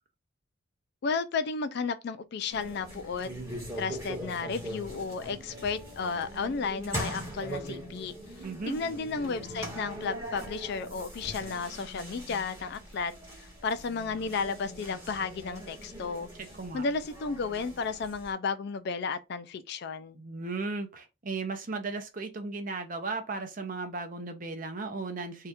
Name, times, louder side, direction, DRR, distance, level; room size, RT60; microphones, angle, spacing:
voice 1, 1.0-3.3 3.8-8.1 8.7-13.1 13.4-16.3 16.7-20.2, left 5 dB, 50° left, 0.3 m, -33 dB
sound 1, 2.5-18.3, equal, 15° right, 1.2 m, -41 dB
voice 2, 8.4-8.8 16.4-16.8 20.2-25.5, right 3 dB, 40° right, 0.6 m, -36 dB
2.7 x 2.4 x 3.4 m
head